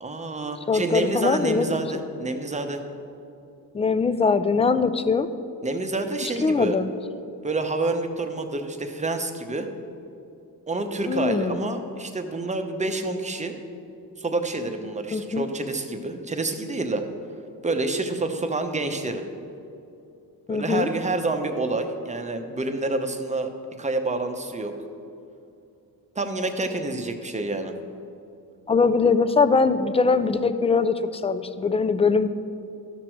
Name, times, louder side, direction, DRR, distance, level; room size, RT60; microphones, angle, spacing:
voice 1, 0.0-2.8 5.6-6.8 7.4-9.7 10.7-13.5 14.2-17.0 17.6-19.2 20.5-23.5 23.8-24.7 26.1-27.7, right 2 dB, 20° right, 6 dB, 0.8 m, -28 dB
voice 2, 0.7-1.7 1.9-2.0 3.7-5.3 6.2-6.9 11.1-11.6 15.1-15.4 20.5-20.9 28.7-32.3, left 4 dB, 15° left, 11 dB, 0.3 m, -22 dB
12.5 x 6.0 x 4.6 m, 2.7 s
cardioid pair, 100°, 39 cm